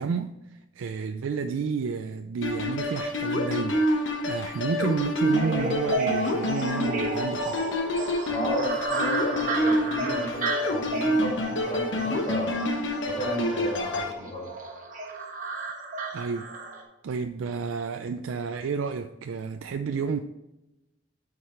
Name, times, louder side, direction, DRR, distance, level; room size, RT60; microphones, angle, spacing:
voice 1, 0.0-7.7 16.1-16.5 17.0-20.2, right 5 dB, 90° right, 0.4 m, -31 dB
sound 1, 2.4-14.1, left 1 dB, 70° left, 1.1 m, -28 dB
sound 2, 5.3-16.8, right 3 dB, 40° right, 1.3 m, -33 dB
voice 2, 8.3-12.6 13.1-14.5, right 1 dB, 30° left, 2.9 m, -33 dB
8.2 x 4.8 x 4.4 m
head